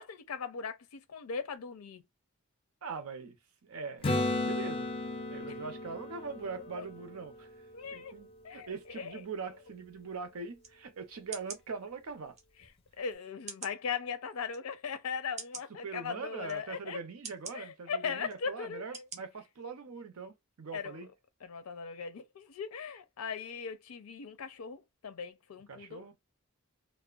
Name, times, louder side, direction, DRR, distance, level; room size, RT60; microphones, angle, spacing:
voice 1, 0.0-2.0 5.4-5.6 7.7-8.1 8.4-8.7 9.0-9.1 13.0-17.0 17.5-19.0 20.7-21.0 21.4-26.0, left 6 dB, 85° left, 0.5 m, -39 dB
voice 2, 2.8-5.0 5.3-7.7 7.9-12.4 15.7-21.1 25.7-26.2, right 5 dB, 85° right, 0.6 m, -42 dB
Acoustic guitar / Strum, 4.0-7.8 12.6-12.7, left 2 dB, 25° left, 0.4 m, -35 dB
sound 1, 10.6-10.7 11.3-11.6 12.4-12.5 13.5-13.8 14.5-14.6 15.4-15.7 16.5-16.6 17.2-17.6 18.3-18.4 18.9-19.2 19.6-19.7, right 5 dB, 30° right, 0.5 m, -43 dB
2.5 x 2.1 x 2.3 m
head